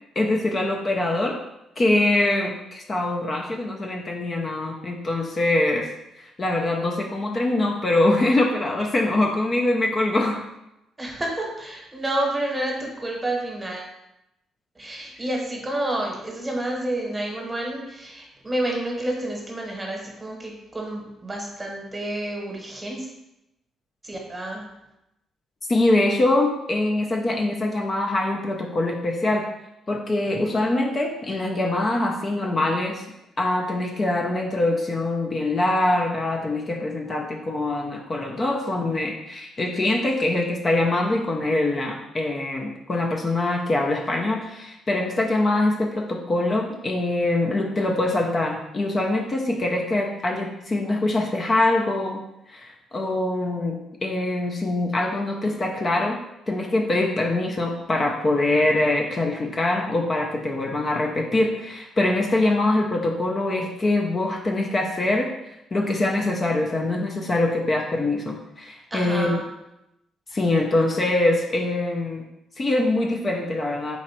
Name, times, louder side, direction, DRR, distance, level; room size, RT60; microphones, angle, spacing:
voice 1, 0.2-1.4 1.8-5.9 6.2-10.4 25.7-29.5 29.9-33.0 33.4-56.2 56.5-69.4 70.3-72.2 72.6-74.0, left 2 dB, 35° left, 1 dB, 0.5 m, -23 dB
voice 2, 11.0-13.9 14.7-23.1 24.0-24.7 68.9-69.4, right 1 dB, 20° right, -1 dB, 1.1 m, -29 dB
4.1 x 2.4 x 4.3 m, 0.89 s
cardioid pair, 90°, 0 cm